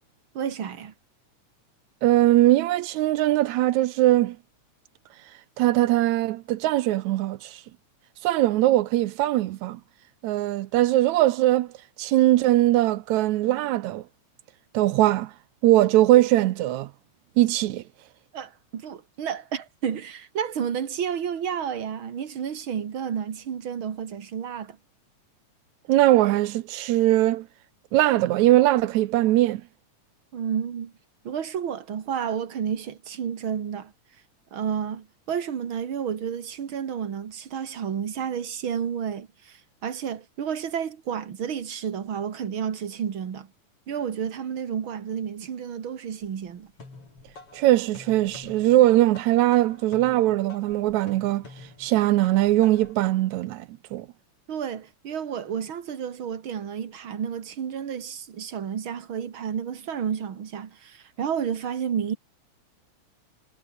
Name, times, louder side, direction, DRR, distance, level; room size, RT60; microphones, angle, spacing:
voice 1, 0.3-0.9 18.3-24.8 30.3-30.9 31.2-33.9 34.5-43.5 43.9-46.7 54.5-62.2, right 8 dB, 45° right, 2.4 m, -31 dB
voice 2, 2.0-4.4 5.6-7.6 8.2-9.8 10.2-11.7 12.0-14.0 14.7-15.3 15.6-16.9 17.4-17.8 25.9-27.5 27.9-29.6 47.5-51.4 51.8-54.1, right 15 dB, 80° right, 2.1 m, -21 dB
sound 1, 46.2-53.1, left 3 dB, 50° left, 7.5 m, -48 dB
omnidirectional pair, 3.4 m